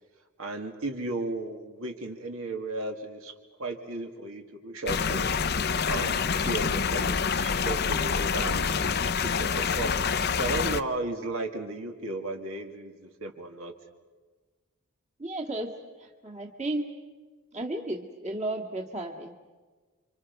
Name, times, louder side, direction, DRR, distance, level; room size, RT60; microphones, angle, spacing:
voice 1, 0.4-3.3 3.6-5.3 5.6-8.7 9.1-10.1 10.3-13.7, right 2 dB, 70° right, 3 dB, 2.3 m, -35 dB
sound 1, 4.9-10.8, left 6 dB, 45° left, 0.6 m, -27 dB
voice 2, 15.2-15.7 16.0-16.9 17.5-19.3, right 1 dB, 30° right, 1 dB, 2.0 m, -33 dB
29.5 x 25.5 x 5.5 m, 1.4 s
head